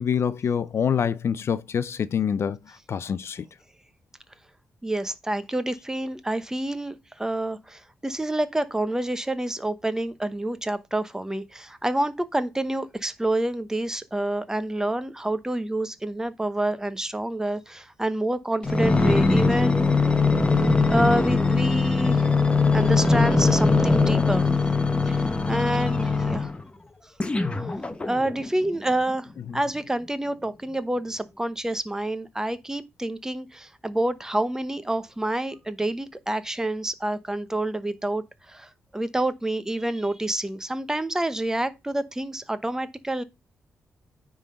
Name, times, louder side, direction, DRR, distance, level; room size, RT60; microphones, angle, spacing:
voice 1, 0.0-3.5 29.5-29.6, left 7 dB, 55° left, 0.5 m, -26 dB
voice 2, 4.8-19.9 20.9-22.3 22.7-24.5 25.1-26.5 27.0-27.1 27.6-27.7 28.1-43.2, right 1 dB, 10° right, 0.9 m, -28 dB
sound 1, 18.6-26.6 27.2-28.5 29.1-29.2, left 3 dB, 20° left, 1.0 m, -21 dB
9.7 x 3.9 x 5.0 m
cardioid pair, 110°, 5 cm